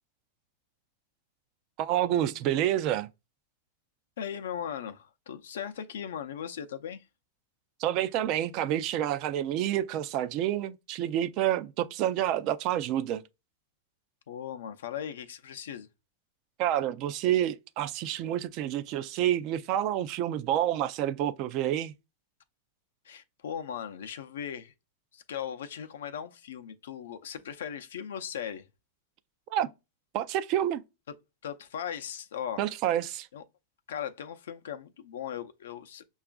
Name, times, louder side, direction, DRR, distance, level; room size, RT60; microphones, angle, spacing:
voice 1, 1.8-3.1 7.8-13.2 16.6-21.9 29.5-29.7 30.1-30.8 32.6-33.3, right 11 dB, 45° right, 0.3 m, -28 dB
voice 2, 4.2-7.1 14.3-15.9 23.0-24.7 25.1-28.7 31.4-32.6 33.3-33.4 33.9-36.0, left 8 dB, 90° left, 0.5 m, -38 dB
5.8 x 2.4 x 2.3 m
supercardioid pair, 140°, 0 cm